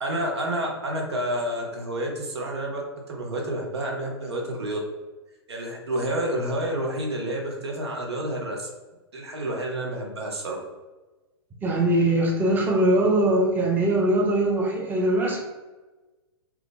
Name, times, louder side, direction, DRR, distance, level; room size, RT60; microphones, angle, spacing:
voice 1, 0.0-4.8 5.5-8.7 9.1-10.6, right 1 dB, 75° right, 0 dB, 0.9 m, -29 dB
voice 2, 11.6-15.4, right 1 dB, 15° right, -1 dB, 0.7 m, -21 dB
3.0 x 2.3 x 3.7 m, 1.2 s
figure-of-eight pair, 110°, 14 cm